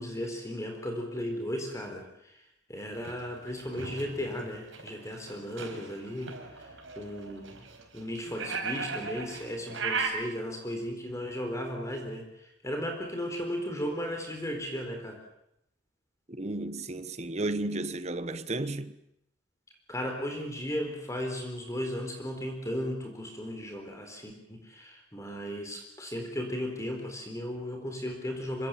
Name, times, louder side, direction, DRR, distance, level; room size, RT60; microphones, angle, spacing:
voice 1, 0.0-2.4 2.7-7.6 7.9-15.2 19.9-28.7, equal, 15° left, 4.0 m, -36 dB
sound 1, 2.9-10.1, right 5 dB, 70° right, 4.9 m, -37 dB
voice 2, 16.3-19.0, right 2 dB, 35° right, 1.1 m, -33 dB
25.5 x 24.5 x 7.5 m
head